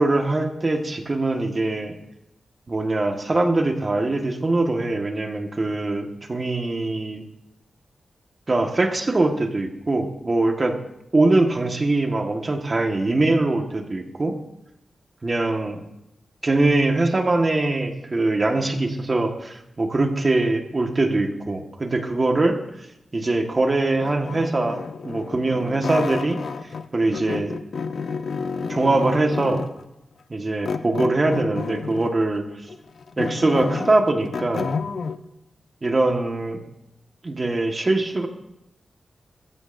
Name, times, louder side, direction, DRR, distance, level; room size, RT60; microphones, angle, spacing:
voice 1, 0.0-1.9 2.7-7.2 8.5-10.8 11.1-14.3 15.2-15.8 16.4-22.9 23.1-26.4 26.9-27.6 28.7-29.6 30.3-32.7 33.2-34.7 35.8-36.6 37.2-38.3, right 2 dB, 35° right, 4 dB, 1.5 m, -22 dB
sound 1, 24.0-26.9 27.1-29.8 30.6-32.2 32.7-35.2, left 5 dB, 65° left, 0.7 m, -30 dB
21.5 x 14.5 x 2.6 m, 0.86 s
wide cardioid pair, 105°, 0 cm